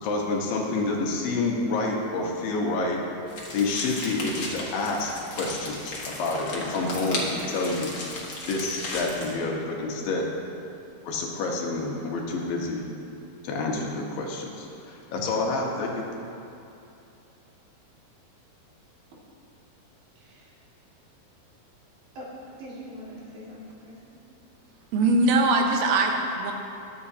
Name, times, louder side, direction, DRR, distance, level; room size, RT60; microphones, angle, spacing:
voice 1, 0.0-3.0 3.5-7.9 8.5-10.3 11.0-12.8 13.4-16.0, left 3 dB, 80° left, -1 dB, 3.1 m, -28 dB
sound 1, 3.3-9.3, left 2 dB, 40° left, 1.3 m, -35 dB
voice 2, 20.2-20.5 22.1-22.3 22.6-24.2, equal, 85° right, -7 dB, 4.0 m, -43 dB
voice 3, 24.9-26.5, right 2 dB, 65° right, 2 dB, 1.9 m, -21 dB
22.0 x 8.4 x 2.8 m, 2.8 s
omnidirectional pair, 4.0 m